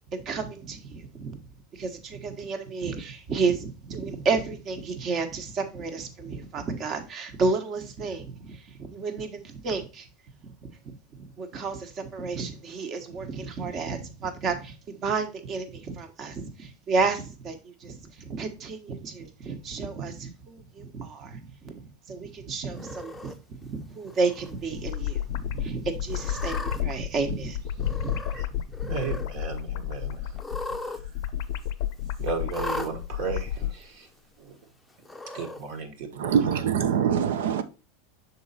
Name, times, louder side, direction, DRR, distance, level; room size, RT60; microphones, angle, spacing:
voice 1, 0.1-1.4 1.7-10.1 10.4-23.3 23.6-28.2 28.5-29.1, right 4 dB, 40° right, 1.2 m, -32 dB
Cat, 22.7-23.3 24.1-24.5 24.9-25.0 26.1-26.8 27.8-28.5 28.7-29.3 30.3-31.0 31.3-31.4 32.5-32.9 33.8-33.9 35.0-35.6, left 2 dB, 5° left, 0.6 m, -37 dB
sound 1, 24.5-33.8, left 10 dB, 70° left, 0.6 m, -31 dB
voice 2, 28.9-30.3 30.9-31.0 32.2-34.1 34.4-34.6 35.3-36.4, right 5 dB, 60° right, 1.4 m, -34 dB
voice 3, 36.1-37.6, right 8 dB, 80° right, 0.7 m, -24 dB
6.2 x 4.0 x 4.2 m
supercardioid pair, 120°, 0 cm